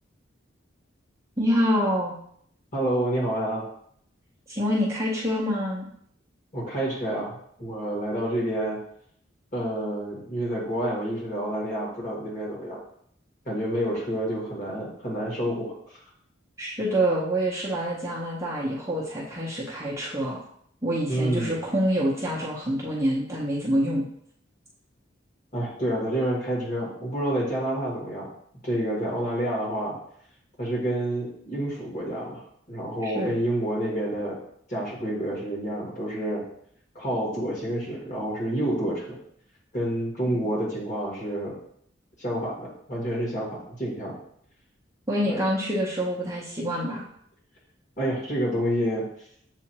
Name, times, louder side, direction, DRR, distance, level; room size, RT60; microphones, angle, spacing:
voice 1, 1.4-2.1 4.5-5.9 16.6-20.4 20.8-24.1 33.0-33.3 45.1-47.0, equal, 15° right, -5 dB, 0.7 m, -26 dB
voice 2, 2.7-3.7 6.5-8.8 9.5-12.8 13.5-15.7 21.1-21.5 25.5-28.3 28.6-30.0 30.6-32.4 32.7-34.4 34.7-36.4 37.0-39.2 39.7-41.6 42.2-44.2 45.3-45.4 48.0-49.1, right 1 dB, 40° left, -5 dB, 1.9 m, -28 dB
7.3 x 2.5 x 2.9 m, 0.67 s
head